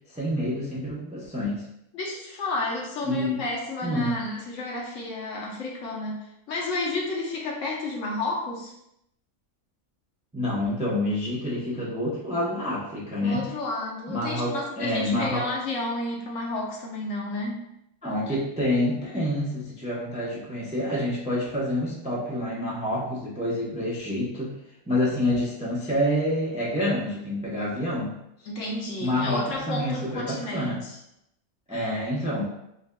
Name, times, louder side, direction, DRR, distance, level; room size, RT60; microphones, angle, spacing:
voice 1, 0.1-1.6 3.0-3.4 3.8-4.1 10.3-13.5 14.1-15.5 18.0-24.6 24.9-28.1 29.0-30.8 31.7-32.4, left 1 dB, 10° right, -6 dB, 0.4 m, -27 dB
voice 2, 1.9-6.2 6.5-8.7 13.2-17.7 28.5-31.0, left 2 dB, 65° left, -2 dB, 1.1 m, -31 dB
5.9 x 2.5 x 2.2 m, 0.81 s
omnidirectional pair, 1.5 m